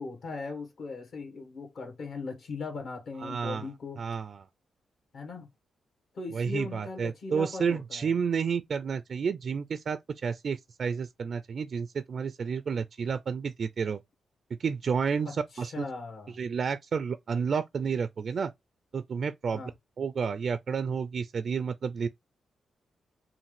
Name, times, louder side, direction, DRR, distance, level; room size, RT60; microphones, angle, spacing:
voice 1, 0.0-4.0 5.1-5.5 6.1-8.1 15.2-16.4 19.5-19.7, left 3 dB, 65° left, 1.4 m, -39 dB
voice 2, 3.2-3.7 4.0-4.5 6.3-14.0 14.6-15.3 15.6-15.9 16.4-18.5 18.9-19.6 20.0-22.1, right 6 dB, 50° right, 0.3 m, -30 dB
5.6 x 2.5 x 3.2 m
cardioid pair, 115°, 0 cm